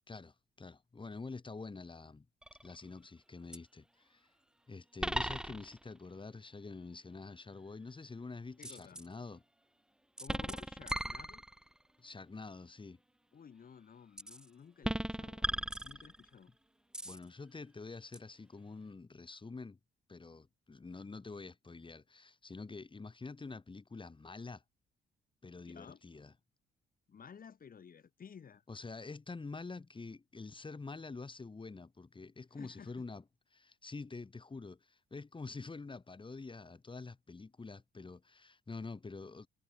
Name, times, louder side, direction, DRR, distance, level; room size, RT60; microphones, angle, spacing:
voice 1, 0.1-2.2 2.6-4.3 4.7-9.4 12.0-13.0 17.0-19.8 20.1-24.6 25.4-26.3 28.7-33.2 33.5-39.5, left 3 dB, 25° left, 3.4 m, -47 dB
sound 1, 2.4-2.8 3.5-3.6 5.0-5.9 8.6-9.1 10.2-11.8 14.2-14.5 14.8-16.4 16.9-17.2 18.1-18.2, right 1 dB, 5° right, 0.5 m, -38 dB
voice 2, 8.6-9.0 10.2-11.4 13.3-16.5 25.5-26.0 27.1-28.6 32.5-32.9, left 7 dB, 45° left, 4.1 m, -54 dB
cardioid pair, 90°, 20 cm